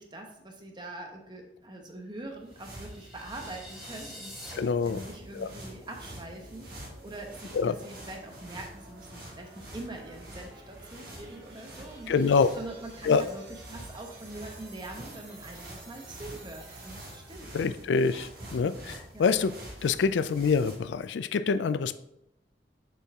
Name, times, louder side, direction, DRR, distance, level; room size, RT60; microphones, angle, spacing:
voice 1, 0.0-4.6 4.8-12.2 12.5-18.0 18.4-18.7 19.1-19.4 20.0-20.3, right 2 dB, 25° right, 2 dB, 1.0 m, -44 dB
sound 1, 2.2-21.0, right 1 dB, 55° right, 1.6 m, -47 dB
sound 2, 2.5-4.5, equal, ahead, 2.1 m, -46 dB
sound 3, 3.6-17.6, right 2 dB, 70° right, 2.3 m, -53 dB
voice 2, 4.5-5.0 5.3-5.5 7.5-7.7 12.1-12.5 13.0-13.2 17.5-19.5 19.8-22.0, left 5 dB, 85° left, 13 dB, 0.4 m, -26 dB
7.0 x 4.4 x 3.6 m, 0.84 s
head